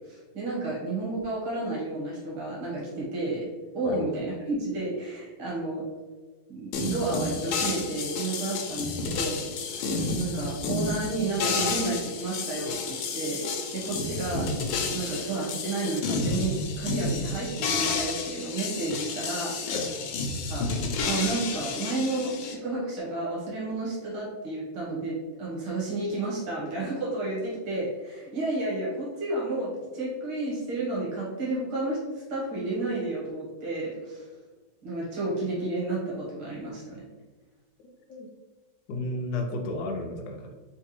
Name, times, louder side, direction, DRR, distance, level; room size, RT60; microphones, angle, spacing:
voice 1, 0.1-3.5 3.7-5.8 6.5-9.8 10.1-14.5 14.8-19.7 20.5-20.7 21.1-32.0 32.3-34.3 34.8-37.0, right 2 dB, 85° right, -6 dB, 2.3 m, -31 dB
sound 1, 6.7-22.5, left 3 dB, 85° left, 1.5 m, -31 dB
voice 2, 38.9-40.5, left 2 dB, 70° left, 2 dB, 1.1 m, -32 dB
4.6 x 3.3 x 3.1 m, 1.3 s
omnidirectional pair, 2.2 m